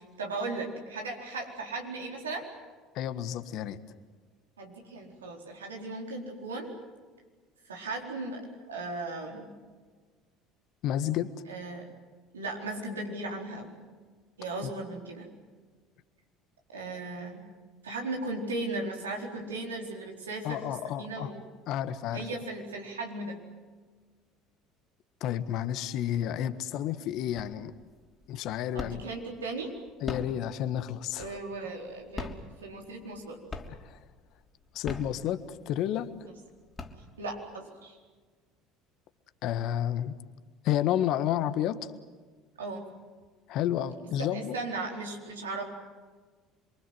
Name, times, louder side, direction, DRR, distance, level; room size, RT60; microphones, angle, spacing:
voice 1, 0.2-2.5 4.6-6.7 7.6-9.5 11.5-11.9 12.3-13.7 14.4-15.3 16.7-17.4 17.8-20.6 21.0-21.4 22.1-23.4 28.7-29.7 31.2-32.3 32.6-33.4 36.2-36.3 37.2-38.0 42.6-42.9 44.2-45.6, right 2 dB, 90° right, 0 dB, 4.3 m, -37 dB
voice 2, 2.9-3.8 10.8-11.4 14.6-14.7 20.4-21.3 21.7-22.3 25.2-27.7 28.3-29.0 30.0-31.4 33.8-34.0 34.7-36.1 39.4-40.2 40.6-41.9 43.5-44.6, left 11 dB, 60° left, 11 dB, 1.5 m, -31 dB
sound 1, 27.4-27.9 28.2-29.2 29.9-31.6 32.1-33.2 33.5-34.1 34.7-35.7 36.2-36.3 36.6-37.5, left 3 dB, 25° left, 3.2 m, -40 dB
27.5 x 23.5 x 7.9 m, 1.5 s
hypercardioid pair, 70°, 0 cm